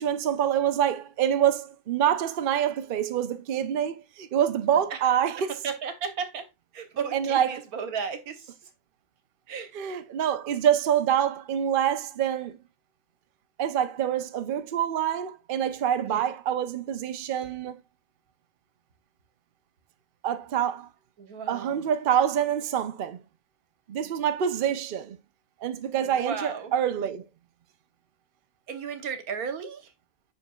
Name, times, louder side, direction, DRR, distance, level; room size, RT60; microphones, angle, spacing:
voice 1, 0.0-5.5 7.1-7.6 9.7-12.6 13.6-17.8 20.2-20.9 21.5-23.2 23.9-25.2 25.6-27.3, right 9 dB, 50° right, 0.7 m, -26 dB
voice 2, 5.4-6.5 6.7-8.5 9.5-9.7 16.0-16.2 21.2-21.8 26.0-26.7 28.7-29.9, right 6 dB, 85° right, 1.5 m, -34 dB
7.3 x 6.1 x 2.3 m
omnidirectional pair, 1.5 m